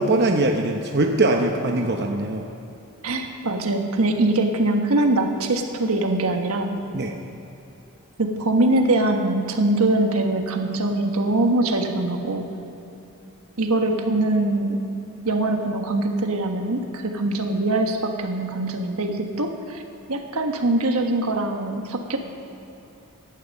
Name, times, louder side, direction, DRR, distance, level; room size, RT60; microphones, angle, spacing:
voice 1, 0.0-2.5 6.9-7.1, right 2 dB, 50° right, 2 dB, 0.9 m, -21 dB
voice 2, 3.0-6.7 8.2-12.4 13.6-14.8 15.2-19.8 20.1-22.2, right 2 dB, 80° right, 4 dB, 1.4 m, -22 dB
16.5 x 11.0 x 5.4 m, 2.9 s
head